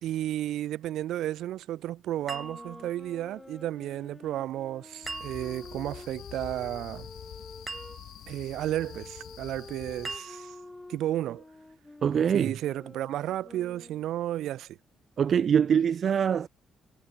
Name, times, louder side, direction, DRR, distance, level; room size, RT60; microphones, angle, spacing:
voice 1, 0.0-7.1 8.3-10.5 10.9-11.4 12.3-14.8, right 13 dB, 80° right, 2.9 m, -33 dB
sound 1, 2.2-8.0 8.7-14.2, left 2 dB, 15° left, 3.3 m, -49 dB
sound 2, 2.3-3.2 5.1-5.8 7.7-8.4 10.0-10.8, right 3 dB, 25° right, 1.2 m, -41 dB
sound 3, 5.0-10.2, left 13 dB, 80° left, 3.4 m, -46 dB
voice 2, 12.0-12.5 15.2-16.5, right 8 dB, 55° right, 1.2 m, -23 dB
cardioid pair, 90°, 0 cm